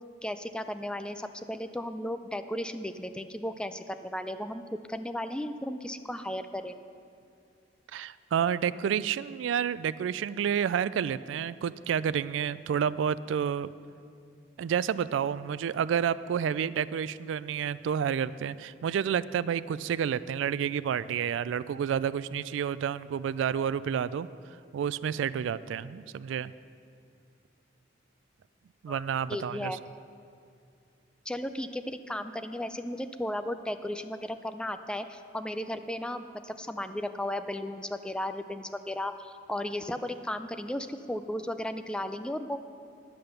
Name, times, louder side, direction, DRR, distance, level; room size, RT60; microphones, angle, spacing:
voice 1, 0.2-4.6 4.9-6.7 28.9-29.0 29.3-29.8 31.3-42.6, left 1 dB, 5° left, 9 dB, 0.4 m, -35 dB
voice 2, 7.9-13.7 14.6-24.3 24.7-26.5 28.8-29.8, right 8 dB, 90° right, 17 dB, 0.3 m, -30 dB
10.5 x 7.7 x 6.7 m, 2.4 s
head